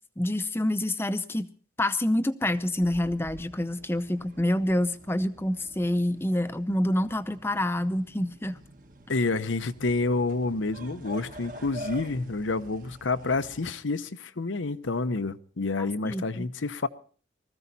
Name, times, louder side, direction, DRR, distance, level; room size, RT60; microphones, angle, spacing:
voice 1, 0.2-1.5 1.8-8.6 15.8-16.5, left 1 dB, 10° left, 0.6 m, -27 dB
sound 1, 2.5-13.8, equal, 45° right, 1.5 m, -47 dB
voice 2, 9.1-16.9, left 3 dB, 90° left, 0.8 m, -29 dB
20.0 x 14.5 x 4.1 m
head